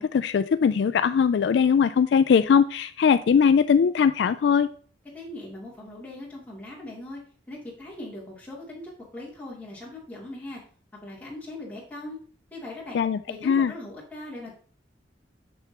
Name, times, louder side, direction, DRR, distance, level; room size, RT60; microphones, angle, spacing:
voice 1, 0.0-4.7 12.9-13.2 13.4-13.7, left 6 dB, 70° left, 13 dB, 0.3 m, -20 dB
voice 2, 5.1-7.2 7.5-10.6 11.0-12.2 12.5-13.0 13.3-14.5, left 1 dB, 10° left, -7 dB, 2.7 m, -40 dB
7.1 x 6.8 x 2.9 m, 0.43 s
head